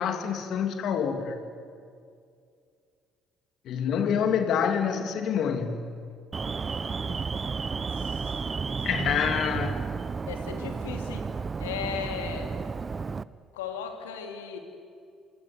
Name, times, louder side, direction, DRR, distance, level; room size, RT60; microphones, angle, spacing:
voice 1, 0.0-1.4 3.6-5.8 8.8-9.8, left 7 dB, 65° left, 6 dB, 3.1 m, -27 dB
Alarm, 6.3-13.2, right 5 dB, 35° right, 0.8 m, -32 dB
voice 2, 8.0-8.3 8.6-8.8 10.3-11.3 11.6-12.5 13.5-14.6, left 7 dB, 85° left, 4 dB, 3.0 m, -37 dB
27.0 x 26.0 x 8.3 m, 2.3 s
hypercardioid pair, 55°, 0 cm